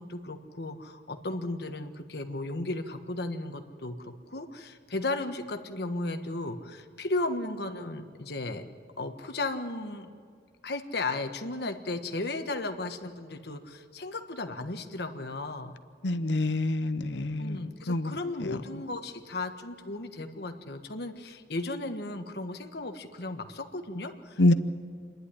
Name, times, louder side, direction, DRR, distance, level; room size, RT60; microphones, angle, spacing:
voice 1, 0.0-8.6 9.0-10.1 10.6-15.8 17.4-24.5, left 2 dB, 65° left, 6 dB, 1.4 m, -35 dB
voice 2, 16.0-17.6 17.9-18.1 24.4-24.5, left 2 dB, 85° left, 11 dB, 0.8 m, -25 dB
27.5 x 11.0 x 10.0 m, 2.1 s
head